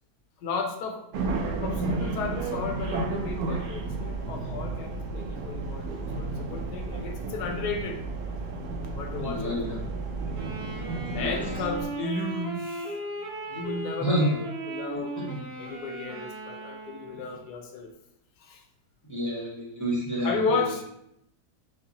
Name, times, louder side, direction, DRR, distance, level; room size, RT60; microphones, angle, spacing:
voice 1, 0.4-1.1 1.6-8.0 8.9-9.8 11.1-13.0 13.5-14.4 14.6-15.1 15.6-17.9 18.4-18.6 20.2-20.8, left 4 dB, 75° left, 4 dB, 1.2 m, -33 dB
sound 1, 1.1-11.9, right 3 dB, 70° right, 1.0 m, -32 dB
voice 2, 9.2-9.8 11.1-11.3 14.0-14.3 15.1-15.4 19.1-20.7, equal, 20° left, -6 dB, 0.5 m, -29 dB
Wind instrument woodwind instrument, 10.3-17.5, right 2 dB, 35° right, 0.9 m, -37 dB
5.4 x 2.0 x 2.8 m, 0.77 s
omnidirectional pair, 1.8 m